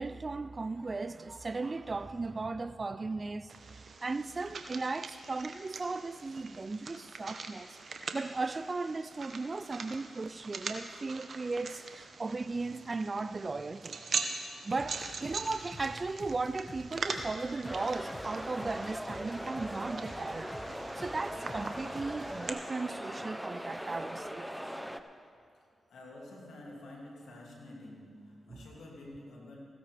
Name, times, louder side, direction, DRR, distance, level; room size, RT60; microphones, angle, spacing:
voice 1, 0.0-3.5 4.0-7.8 8.1-14.0 14.6-20.5 21.0-24.5 28.5-28.6, right 3 dB, 40° right, 0.4 m, -36 dB
sound 1, 3.5-22.5, right 4 dB, 60° right, 1.0 m, -42 dB
sound 2, 14.8-22.4, left 1 dB, 25° left, 1.9 m, -50 dB
sound 3, 17.6-25.0, equal, ahead, 0.8 m, -40 dB
voice 2, 25.9-29.6, left 1 dB, 75° left, 2.7 m, -49 dB
16.5 x 15.0 x 3.5 m
supercardioid pair, 40°, 0 cm